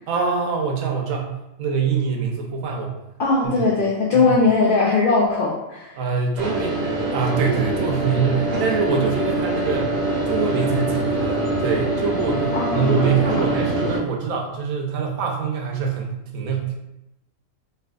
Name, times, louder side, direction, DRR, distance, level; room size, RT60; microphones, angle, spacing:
voice 1, 0.1-2.9 3.4-3.7 4.1-4.4 6.0-6.8 7.1-10.0 10.3-16.8, right 5 dB, 80° right, 1 dB, 1.0 m, -24 dB
voice 2, 3.2-6.0 12.5-13.5, left 3 dB, 80° left, -3 dB, 0.4 m, -20 dB
sound 1, 6.4-14.0, right 2 dB, 55° right, 0.8 m, -24 dB
3.3 x 2.7 x 2.3 m, 0.89 s
omnidirectional pair, 1.5 m